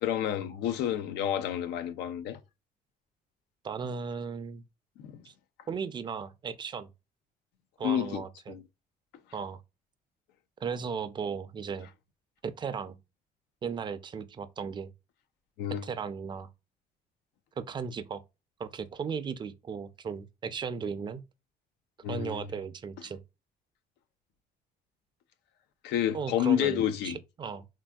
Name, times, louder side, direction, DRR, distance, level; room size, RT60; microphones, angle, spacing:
voice 1, 0.0-2.4 5.0-5.2 7.8-8.2 8.5-8.6 15.6-15.8 22.0-22.4 25.8-27.2, left 10 dB, 85° left, 0.4 m, -29 dB
voice 2, 3.6-4.6 5.2-5.3 5.7-6.9 7.8-8.5 9.3-9.6 10.6-11.9 12.4-13.0 13.6-14.9 15.8-16.5 17.6-18.2 18.6-21.2 22.1-23.2 26.1-27.7, right 6 dB, 25° right, 0.4 m, -36 dB
3.4 x 2.6 x 2.2 m
cardioid pair, 110°, 17 cm